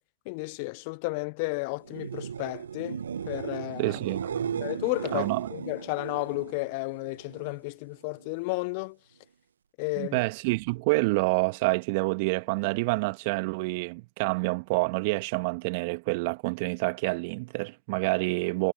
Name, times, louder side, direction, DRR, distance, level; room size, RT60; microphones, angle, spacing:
voice 1, 0.3-4.0 4.6-9.0 9.8-10.2, left 30 dB, 55° left, 0.5 m, -33 dB
sound 1, 1.8-7.6 7.9-8.5 15.6-15.7, right 7 dB, 75° right, 1.3 m, -36 dB
voice 2, 3.8-4.7 5.1-5.5 10.0-18.7, right 27 dB, 55° right, 2.0 m, -28 dB
figure-of-eight pair, 85°, 0 cm